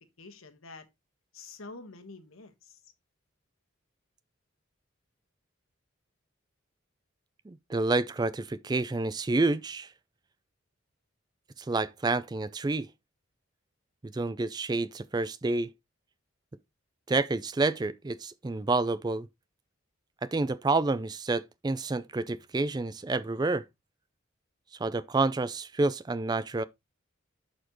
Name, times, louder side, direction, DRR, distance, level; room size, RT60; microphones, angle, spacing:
voice 1, 0.2-0.8 1.3-2.8, left 3 dB, 85° left, 1.3 m, -47 dB
voice 2, 7.5-9.9 11.6-12.9 14.0-15.7 17.1-19.3 20.2-23.6 24.8-26.6, right 3 dB, 20° right, 0.3 m, -29 dB
11.5 x 4.3 x 3.0 m
head